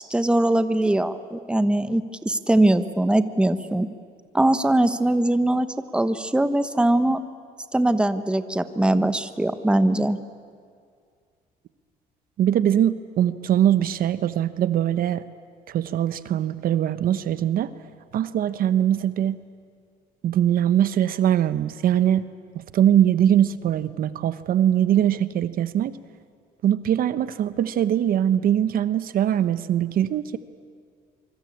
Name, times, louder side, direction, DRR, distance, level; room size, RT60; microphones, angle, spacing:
voice 1, 0.0-3.9 4.3-5.7 5.9-7.2 7.7-10.2, right 1 dB, 5° right, 11 dB, 1.1 m, -21 dB
voice 2, 12.4-15.2 15.7-17.7 18.1-19.4 20.2-22.2 22.5-25.9 26.6-30.4, right 10 dB, 60° right, 14 dB, 1.0 m, -22 dB
24.5 x 24.5 x 8.6 m, 2.1 s
cardioid pair, 110°, 17 cm